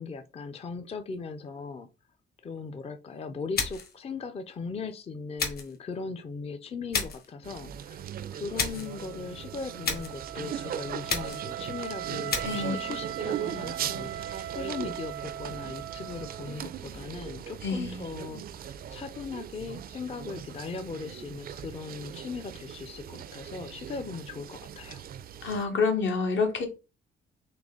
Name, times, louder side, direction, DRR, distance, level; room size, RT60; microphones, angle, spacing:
voice 1, 0.0-1.9 2.4-8.0 8.3-25.0, left 4 dB, 30° left, 8 dB, 0.5 m, -39 dB
sound 1, 3.5-4.0 5.4-5.8 6.9-7.3 8.6-8.9 9.8-10.2 11.1-11.5 12.3-12.7, left 4 dB, 50° left, 1.3 m, -31 dB
sound 2, 7.4-25.6, right 9 dB, 50° right, 0.4 m, -39 dB
Wind instrument woodwind instrument, 8.7-16.8, right 11 dB, 90° right, 0.8 m, -40 dB
voice 2, 12.4-12.8 17.6-18.0 25.4-26.7, left 4 dB, 75° left, 4 dB, 1.3 m, -28 dB
3.9 x 3.0 x 3.7 m, 0.29 s
cardioid pair, 90°, 20 cm